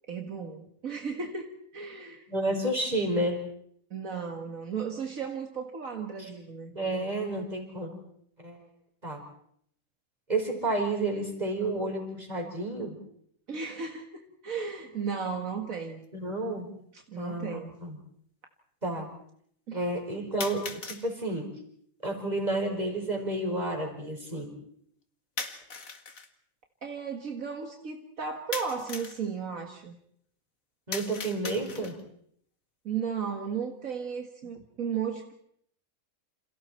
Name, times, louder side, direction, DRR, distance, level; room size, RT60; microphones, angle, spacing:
voice 1, 0.1-2.3 3.9-6.7 13.5-16.0 16.9-17.8 19.7-19.8 26.8-30.0 32.8-35.3, right 6 dB, 70° right, 3 dB, 2.2 m, -35 dB
voice 2, 2.3-3.4 6.7-8.0 8.4-8.6 9.0-9.2 10.3-12.9 16.1-16.7 17.2-18.0 18.8-19.1 19.7-21.5 22.0-24.5 30.9-32.0, right 1 dB, 30° right, 3 dB, 5.2 m, -31 dB
sound 1, 16.0-16.1 17.1-17.2 20.4-21.1 25.4-26.3 28.5-29.2 30.9-32.1, left 5 dB, 70° left, 2.2 m, -38 dB
29.0 x 27.5 x 4.5 m, 0.67 s
omnidirectional pair, 1.5 m